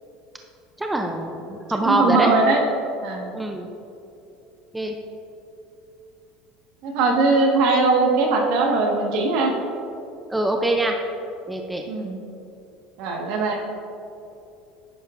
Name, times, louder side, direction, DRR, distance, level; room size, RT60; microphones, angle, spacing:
voice 1, 0.8-2.3 3.3-3.7 4.7-5.0 10.3-11.0 11.5-11.8, right 1 dB, 5° right, 2 dB, 0.5 m, -24 dB
voice 2, 1.8-2.6 3.0-3.3 6.8-9.5 11.9-12.2 13.0-13.6, right 3 dB, 65° right, 1 dB, 1.4 m, -20 dB
11.0 x 9.6 x 2.5 m, 2.7 s
cardioid pair, 155°, 0 cm